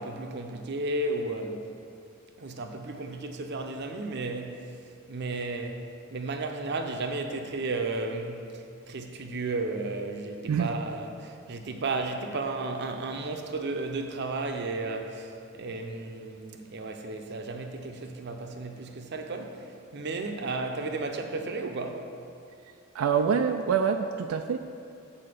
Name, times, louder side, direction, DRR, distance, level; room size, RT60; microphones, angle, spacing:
voice 1, 0.0-1.7 2.4-4.7 5.1-22.1, right 2 dB, 55° right, 0.6 m, -33 dB
voice 2, 22.9-24.6, right 6 dB, 90° right, 0.3 m, -25 dB
7.7 x 4.3 x 6.6 m
head